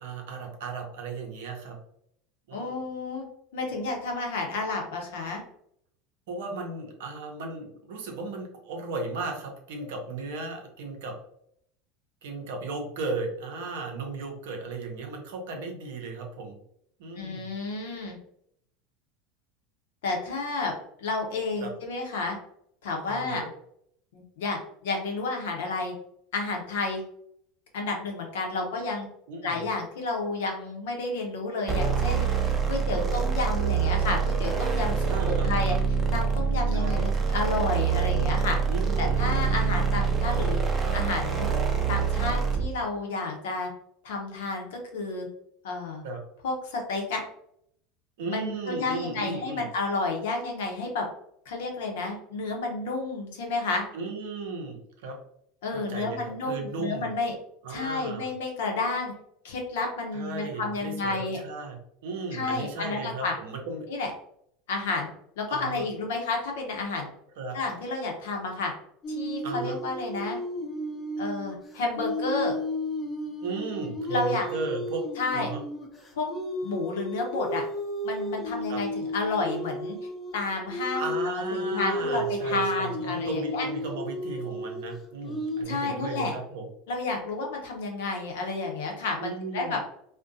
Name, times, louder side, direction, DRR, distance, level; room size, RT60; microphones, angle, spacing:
voice 1, 0.0-1.8 2.5-2.7 6.3-11.1 12.2-16.6 17.0-17.5 21.6-21.7 23.1-23.5 29.3-29.6 35.1-35.8 36.7-37.1 38.7-39.3 39.9-40.0 46.0-46.2 48.2-49.6 53.9-55.2 55.7-57.1 57.6-58.3 60.1-61.8 62.0-63.9 65.5-65.8 67.4-67.6 69.4-69.8 73.4-75.6 78.7-78.8 80.9-86.7 89.2-89.8, right 3 dB, 70° right, 2 dB, 0.6 m, -35 dB
voice 2, 2.5-3.3 3.5-5.4 17.1-18.2 20.0-20.7 21.0-22.4 22.8-23.4 24.1-25.9 26.3-27.0 27.7-29.1 29.4-32.2 32.7-35.8 36.1-38.6 39.0-40.6 40.9-41.5 41.9-43.7 44.0-45.3 45.6-46.0 46.4-47.2 48.2-51.1 51.5-53.8 55.6-57.3 57.7-59.1 59.4-61.4 62.3-63.3 63.9-64.1 64.7-65.1 65.4-67.1 67.5-68.7 69.1-70.4 71.2-72.5 74.1-74.5 75.2-75.5 76.1-76.3 76.6-77.6 78.0-80.0 80.3-81.1 81.5-83.7 85.7-86.3 86.9-89.8, left 3 dB, 75° left, 1 dB, 0.7 m, -31 dB
sound 1, 31.7-42.7, right 6 dB, 25° right, 0.6 m, -25 dB
sound 2, 69.0-85.6, equal, 25° left, 0.5 m, -33 dB
2.5 x 2.1 x 2.5 m, 0.71 s
hypercardioid pair, 85°, 0 cm